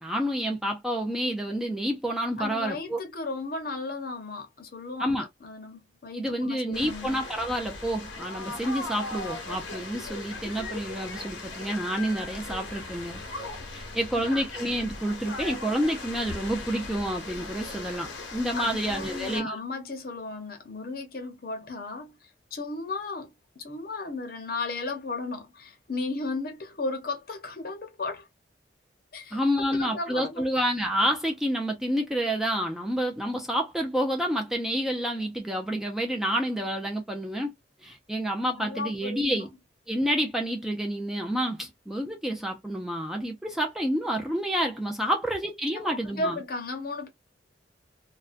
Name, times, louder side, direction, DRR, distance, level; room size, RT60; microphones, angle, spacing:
voice 1, 0.0-3.0 5.0-5.3 6.1-13.2 13.7-19.6 29.3-37.5 37.8-39.5 39.9-46.4, equal, ahead, 0.3 m, -29 dB
voice 2, 2.4-7.1 18.5-23.3 23.6-28.3 29.1-30.5 38.6-39.5 45.7-47.1, left 3 dB, 50° left, 0.7 m, -35 dB
sound 1, 6.7-19.4, left 2 dB, 90° left, 0.8 m, -38 dB
2.5 x 2.1 x 2.4 m
head